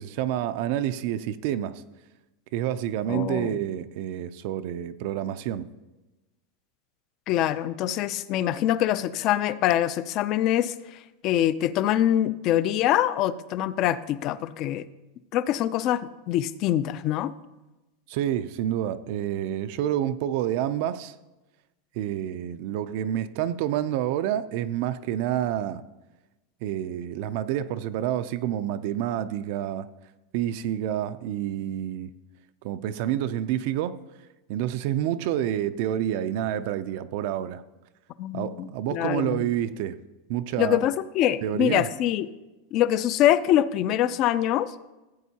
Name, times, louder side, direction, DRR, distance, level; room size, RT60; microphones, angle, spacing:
voice 1, 0.0-1.8 2.5-5.7 18.1-21.1 22.0-25.8 26.6-29.9 30.3-32.1 32.6-34.0 34.5-37.6 38.3-40.0 40.3-40.8 41.4-41.9, right 11 dB, 45° right, 0.4 m, -28 dB
voice 2, 3.1-3.6 7.3-10.7 11.2-14.9 15.3-17.3 38.2-39.5 40.6-42.3 42.7-44.7, left 12 dB, 30° left, 0.3 m, -24 dB
15.5 x 8.2 x 2.8 m
supercardioid pair, 175°, 0 cm